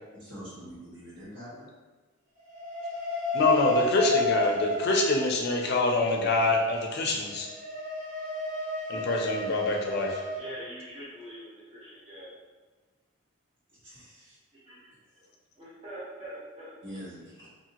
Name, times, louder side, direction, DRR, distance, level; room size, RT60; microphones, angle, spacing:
voice 1, 0.1-1.7 13.8-14.4 15.1-15.3 16.8-17.3, equal, 60° right, -10 dB, 1.5 m, -44 dB
sound 1, 2.5-5.4 7.3-10.4, left 1 dB, 25° left, 0.9 m, -31 dB
voice 2, 3.3-7.5 8.9-10.2, left 2 dB, 50° left, 1 dB, 0.4 m, -25 dB
voice 3, 10.4-12.3 14.7-14.8 15.6-16.7, equal, 30° right, -9 dB, 0.6 m, -43 dB
2.7 x 2.5 x 2.8 m, 1.3 s
head